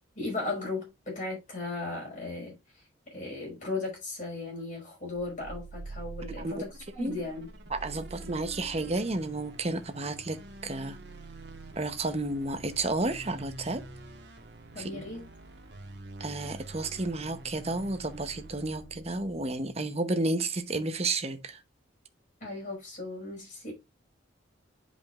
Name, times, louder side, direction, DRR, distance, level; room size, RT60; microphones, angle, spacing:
voice 1, 0.2-6.7 6.9-7.5 8.1-8.4 14.7-15.3 22.4-23.7, left 3 dB, 40° left, 5.3 m, -36 dB
sound 1, 5.1-19.7, right 2 dB, 60° right, 1.4 m, -46 dB
voice 2, 7.7-11.0 11.8-13.8 14.8-15.1 16.2-21.6, right 2 dB, 30° right, 0.9 m, -32 dB
10.5 x 5.2 x 2.5 m
head